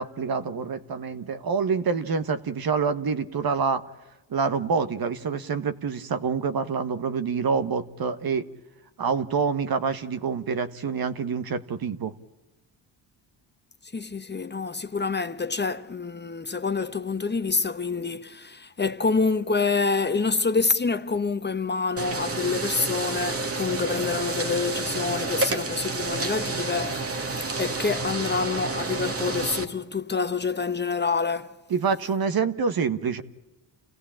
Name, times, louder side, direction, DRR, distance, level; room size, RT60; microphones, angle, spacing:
voice 1, 0.0-3.8 4.3-8.5 9.0-12.1 31.7-33.2, right 5 dB, 55° right, 1.4 m, -26 dB
voice 2, 13.9-27.2 27.6-31.6, left 4 dB, 25° left, 0.9 m, -27 dB
sound 1, 22.0-29.6, right 3 dB, 30° right, 1.8 m, -30 dB
28.5 x 16.5 x 8.7 m
cardioid pair, 90°, 43 cm